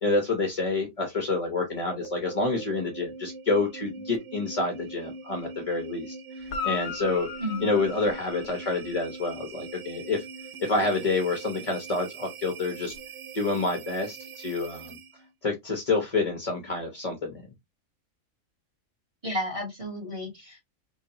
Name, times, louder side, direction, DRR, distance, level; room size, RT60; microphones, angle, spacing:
voice 1, 0.0-7.3 7.6-10.2 10.6-12.9 13.3-15.0 15.4-17.3, left 3 dB, 30° left, 0.8 m, -28 dB
sound 1, 1.7-15.3, right 4 dB, 65° right, 0.9 m, -42 dB
Guitar, 6.4-9.0 12.9-13.0, left 6 dB, 60° left, 0.5 m, -36 dB
voice 2, 7.4-7.7 19.2-20.7, equal, 25° right, 1.9 m, -32 dB
3.8 x 3.1 x 2.8 m
omnidirectional pair, 1.5 m